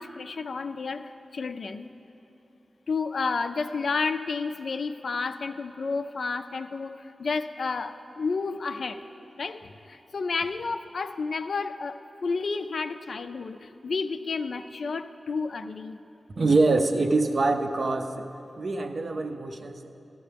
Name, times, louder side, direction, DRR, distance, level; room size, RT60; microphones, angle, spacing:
voice 1, 0.0-1.9 2.9-9.0 9.4-16.0, left 4 dB, 65° left, 9 dB, 0.4 m, -31 dB
voice 2, 16.4-18.3 18.6-19.9, right 3 dB, 50° right, 6 dB, 0.6 m, -24 dB
13.0 x 12.5 x 3.4 m, 2.9 s
wide cardioid pair, 130°, 0 cm